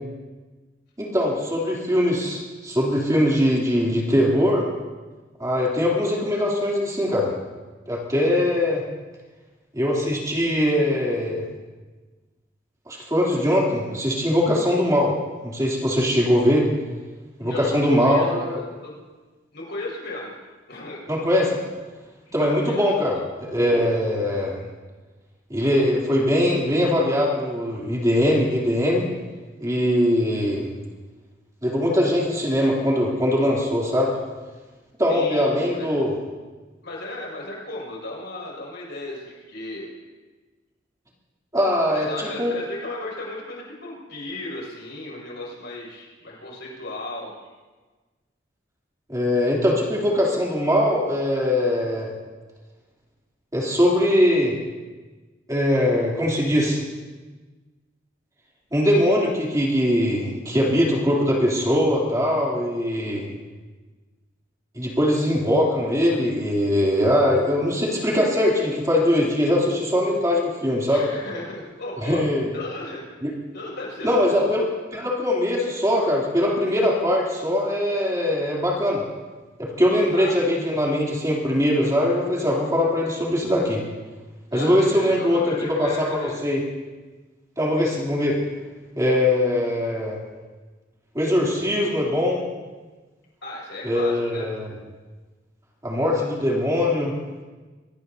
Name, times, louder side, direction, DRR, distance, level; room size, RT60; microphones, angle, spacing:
voice 1, 1.0-4.6 5.4-7.3 7.9-8.8 9.7-11.5 12.9-15.1 15.4-16.7 17.4-18.6 21.1-21.6 22.3-24.6 25.5-29.1 29.6-30.7 31.6-34.1 35.0-36.1 41.5-42.1 42.4-42.5 49.1-52.1 53.5-54.5 55.5-56.8 58.7-63.3 64.7-71.0 72.0-72.5 73.2-73.3 74.0-74.6 74.9-79.0 79.6-83.8 84.5-86.6 87.6-88.4 89.0-90.2 91.1-92.4 93.8-94.7 95.8-97.2, left 1 dB, 15° right, -4 dB, 3.1 m, -21 dB
voice 2, 17.4-18.3 18.8-18.9 19.5-20.3 20.7-21.1 22.3-22.8 23.1-23.2 35.1-35.9 36.8-39.9 41.9-47.3 70.9-72.2 72.5-73.0 73.5-74.5 75.6-75.7 80.1-80.4 84.5-86.3 87.7-88.0 93.4-94.5, left 2 dB, 60° left, -3 dB, 6.2 m, -35 dB
24.0 x 18.5 x 2.8 m, 1.3 s
head